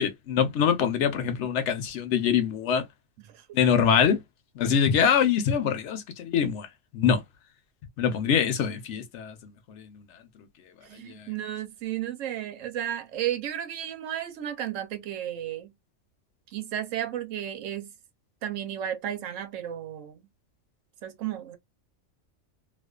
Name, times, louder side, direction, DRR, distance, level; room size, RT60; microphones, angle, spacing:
voice 1, 0.0-2.8 3.5-4.2 4.6-6.7 6.9-7.2 8.0-9.3, left 7 dB, 70° left, 0.9 m, -24 dB
voice 2, 3.2-3.6 10.8-15.7 16.5-17.9 18.4-20.3 21.0-21.6, right 11 dB, 85° right, 1.0 m, -33 dB
2.4 x 2.3 x 2.2 m
omnidirectional pair, 1.3 m